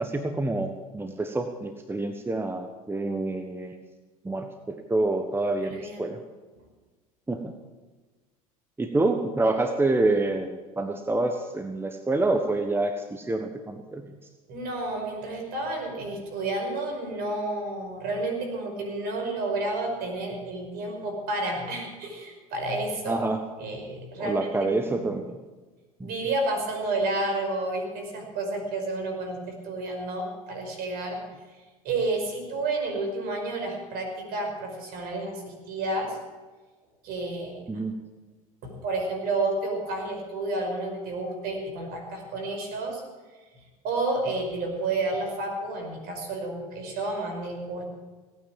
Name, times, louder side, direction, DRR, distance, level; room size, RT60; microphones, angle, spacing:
voice 1, 0.0-3.8 4.2-6.2 7.3-7.5 8.8-14.0 23.1-23.4 24.2-25.2 26.0-26.1 37.7-37.9, right 2 dB, 10° right, 6 dB, 1.3 m, -27 dB
voice 2, 5.6-6.1 14.5-23.3 23.6-24.5 24.8-25.1 26.0-31.2 31.5-36.2 37.0-37.6 38.6-43.0 43.8-47.8, right 2 dB, 55° right, 4 dB, 5.4 m, -30 dB
18.0 x 9.4 x 7.5 m, 1.3 s
hypercardioid pair, 75°, 19 cm